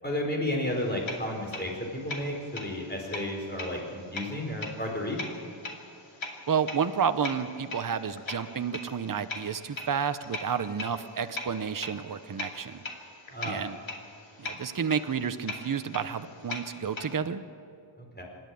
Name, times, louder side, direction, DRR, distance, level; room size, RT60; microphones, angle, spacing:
voice 1, 0.0-1.7 2.0-5.2 13.3-13.6 18.0-18.2, left 1 dB, 20° left, 0 dB, 4.7 m, -32 dB
sound 1, 0.7-17.2, left 3 dB, 65° left, 2.7 m, -41 dB
voice 2, 6.5-12.8 13.4-13.8 14.4-17.4, right 7 dB, 40° right, 10 dB, 0.9 m, -30 dB
26.5 x 11.0 x 9.3 m, 2.5 s
wide cardioid pair, 115°, 50 cm